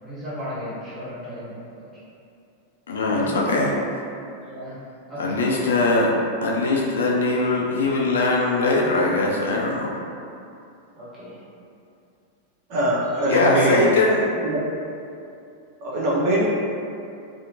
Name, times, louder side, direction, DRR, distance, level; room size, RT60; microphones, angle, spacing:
voice 1, 0.0-1.8 3.1-3.3 4.4-4.8 5.1-5.6 10.9-11.4 15.8-16.0, equal, 10° right, -12 dB, 1.4 m, -36 dB
voice 2, 2.9-3.8 5.2-6.1 6.4-10.0 13.3-14.3, left 2 dB, 65° left, -2 dB, 0.3 m, -21 dB
voice 3, 12.7-13.9 14.4-14.6 15.8-16.4, right 1 dB, 45° right, -6 dB, 0.5 m, -22 dB
2.7 x 2.4 x 2.7 m, 2.5 s
figure-of-eight pair, 90°, 0 cm